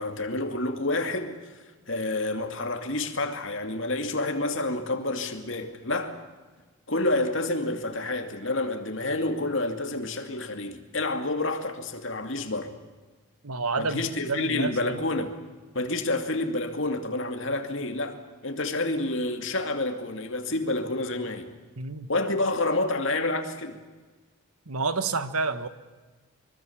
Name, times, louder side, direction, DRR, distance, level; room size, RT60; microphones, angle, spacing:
voice 1, 0.0-1.6 1.9-6.2 6.9-12.7 13.8-15.3 15.7-21.5 22.1-23.8, left 2 dB, 55° left, 2.6 m, -29 dB
voice 2, 13.4-15.0 21.8-22.1 24.6-25.7, right 3 dB, 85° right, 1.5 m, -29 dB
24.5 x 24.0 x 7.3 m
head